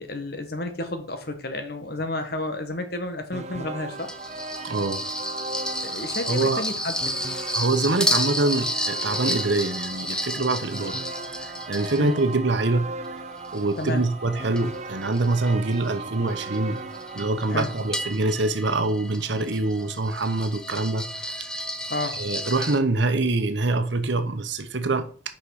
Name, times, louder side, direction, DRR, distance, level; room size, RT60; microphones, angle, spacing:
voice 1, 0.0-4.1 5.8-7.3 12.0-12.2 13.8-14.0 17.5-17.7 21.9-22.2, left 2 dB, 50° left, 1.4 m, -31 dB
sound 1, 3.3-18.1, right 3 dB, 35° right, 0.6 m, -37 dB
sound 2, 4.0-12.5 13.0-22.8, left 1 dB, 5° left, 0.6 m, -32 dB
voice 2, 4.6-5.0 6.3-6.6 7.5-11.0 11.7-12.9 13.5-16.8 17.1-21.1 21.4-21.5 22.2-25.1, right 2 dB, 65° right, 1.0 m, -24 dB
5.9 x 5.6 x 6.4 m
head